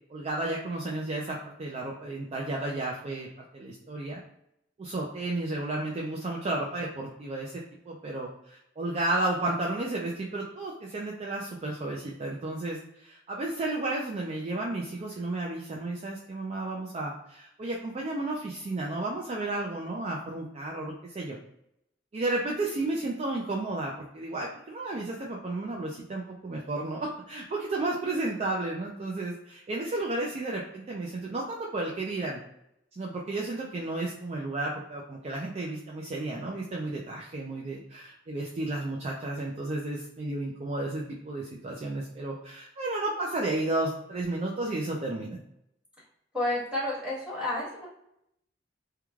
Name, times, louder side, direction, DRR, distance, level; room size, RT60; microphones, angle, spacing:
voice 1, 0.1-3.3 3.5-4.2 4.8-7.5 7.9-21.4 22.1-32.4 33.0-45.4, right 2 dB, 35° right, -2 dB, 0.4 m, -32 dB
voice 2, 46.3-47.9, left 1 dB, 5° right, -8 dB, 1.4 m, -30 dB
3.0 x 2.2 x 2.3 m, 0.78 s
head